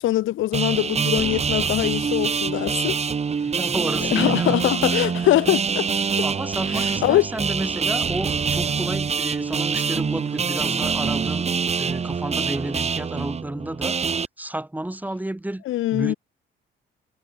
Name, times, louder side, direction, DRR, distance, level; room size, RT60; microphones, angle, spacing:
voice 1, 0.0-3.0 4.1-5.9 7.0-7.2 15.7-16.1, left 14 dB, 85° left, 1.6 m, -22 dB
sound 1, 0.5-14.3, right 6 dB, 35° right, 1.1 m, -25 dB
voice 2, 3.4-4.6 6.2-11.5 11.8-14.1 14.4-15.6 15.9-16.1, right 1 dB, 10° right, 1.6 m, -31 dB
cardioid pair, 90°, 20 cm